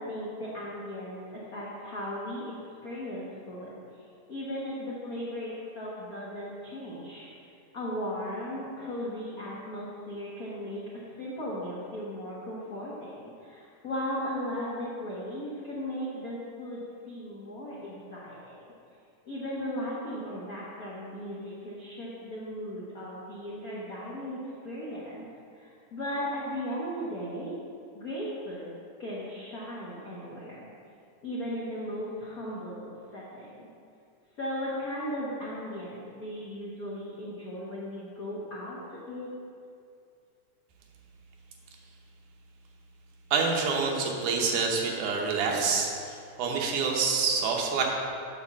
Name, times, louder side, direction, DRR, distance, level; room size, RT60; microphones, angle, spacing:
voice 1, 0.0-2.5 2.8-7.3 7.7-18.6 19.3-25.2 25.5-27.6 27.9-30.7 31.2-33.7 34.4-39.3, equal, 90° left, -7 dB, 0.7 m, -37 dB
voice 2, 43.3-47.8, right 5 dB, 80° right, 0 dB, 2.5 m, -27 dB
6.9 x 5.3 x 6.9 m, 2.5 s
omnidirectional pair, 3.6 m